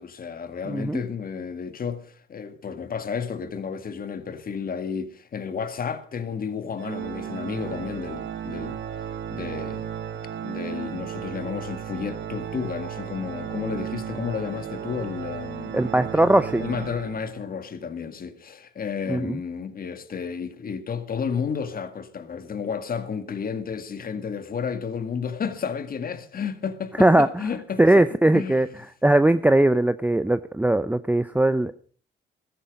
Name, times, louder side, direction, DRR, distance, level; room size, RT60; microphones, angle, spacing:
voice 1, 0.0-8.8 9.3-9.9 10.4-15.9 16.1-16.2 16.6-28.6, left 6 dB, 45° left, 1.9 m, -32 dB
voice 2, 0.7-1.0 15.7-16.6 19.1-19.4 27.0-27.3 27.8-28.7 29.0-31.7, right 1 dB, 10° right, 0.6 m, -19 dB
Organ, 6.8-17.6, right 9 dB, 65° right, 1.5 m, -34 dB
16.0 x 13.5 x 5.2 m
cardioid pair, 90°, 20 cm